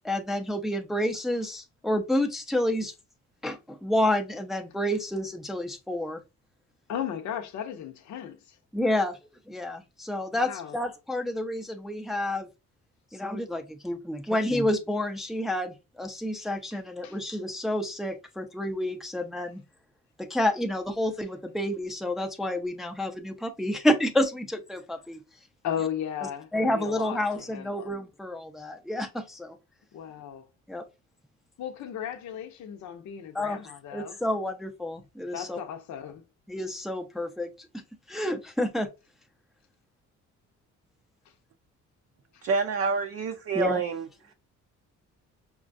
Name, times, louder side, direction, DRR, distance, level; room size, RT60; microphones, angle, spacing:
voice 1, 0.0-2.9 3.4-6.2 8.7-9.2 9.5-12.5 13.1-19.6 20.2-25.2 26.5-29.6 30.7-30.8 33.3-33.6 33.9-35.6 36.5-37.8 38.1-38.9 43.5-43.8, left 1 dB, ahead, 0.5 m, -29 dB
voice 2, 6.9-8.6 10.4-10.8 17.0-17.2 25.6-27.9 29.9-30.4 31.6-34.2 35.3-36.2 42.3-42.4, left 9 dB, 70° left, 0.7 m, -36 dB
voice 3, 42.4-44.1, right 5 dB, 50° right, 0.5 m, -27 dB
5.0 x 2.3 x 2.6 m
cardioid pair, 90°, 30 cm